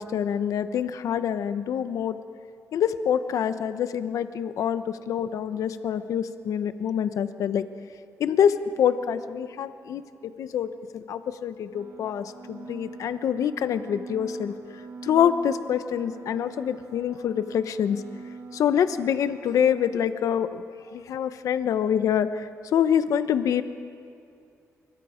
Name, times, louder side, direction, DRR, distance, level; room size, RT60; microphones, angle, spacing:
voice 1, 0.0-2.2 2.7-7.6 8.2-10.7 10.9-14.5 15.0-18.0 18.5-20.6 20.9-23.6, left 8 dB, 70° left, 11 dB, 0.9 m, -26 dB
sound 1, 11.7-20.0, right 4 dB, 80° right, 1.9 m, -43 dB
27.0 x 24.0 x 5.1 m, 2.5 s
wide cardioid pair, 170°, 6 cm